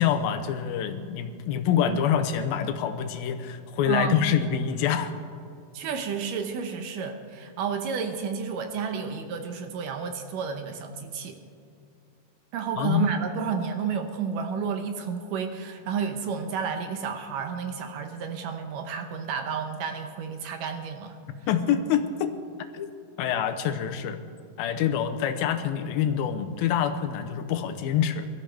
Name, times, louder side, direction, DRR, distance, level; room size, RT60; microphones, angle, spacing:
voice 1, 0.0-5.1 12.8-13.1 21.5-22.3 22.7-22.9 23.2-24.2 24.6-28.3, left 9 dB, 80° left, 8 dB, 2.5 m, -26 dB
voice 2, 3.9-4.2 5.7-11.4 12.5-21.2, right 6 dB, 70° right, 6 dB, 2.3 m, -31 dB
22.5 x 13.0 x 3.4 m, 2.4 s
omnidirectional pair, 4.3 m